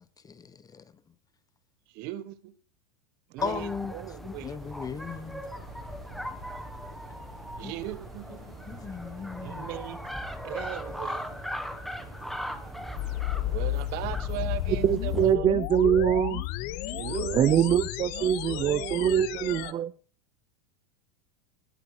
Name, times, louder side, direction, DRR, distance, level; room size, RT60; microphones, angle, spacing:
voice 1, 0.2-0.8 3.4-3.9 4.2-5.4 7.6-7.7 8.7-9.7 16.7-17.0, left 5 dB, 20° left, 1.0 m, -36 dB
voice 2, 1.9-2.5 3.3-4.6 7.6-8.6 9.4-10.1 10.4-11.4 13.4-15.6 16.9-19.8, right 14 dB, 50° right, 1.4 m, -38 dB
sound 1, 3.4-15.4, equal, ahead, 1.3 m, -39 dB
sound 2, 4.6-14.0, right 7 dB, 85° right, 6.7 m, -50 dB
sound 3, 13.0-19.7, left 17 dB, 50° left, 0.9 m, -32 dB
voice 3, 14.8-16.4 17.3-19.9, right 10 dB, 25° right, 0.5 m, -24 dB
18.0 x 8.2 x 5.0 m
supercardioid pair, 120°, 20 cm